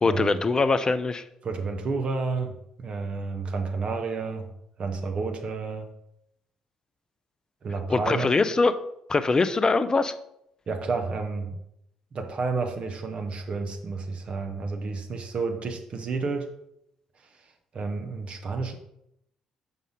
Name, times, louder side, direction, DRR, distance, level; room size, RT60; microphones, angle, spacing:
voice 1, 0.0-1.2 7.9-8.7 9.1-10.1, left 3 dB, 25° left, 13 dB, 0.5 m, -22 dB
voice 2, 1.4-2.5 2.8-4.5 4.8-5.9 7.6-8.3 10.7-11.6 12.1-16.5 17.7-18.7, right 4 dB, 40° right, 4 dB, 0.9 m, -30 dB
6.2 x 5.4 x 3.8 m, 0.77 s
figure-of-eight pair, 45°, 3 cm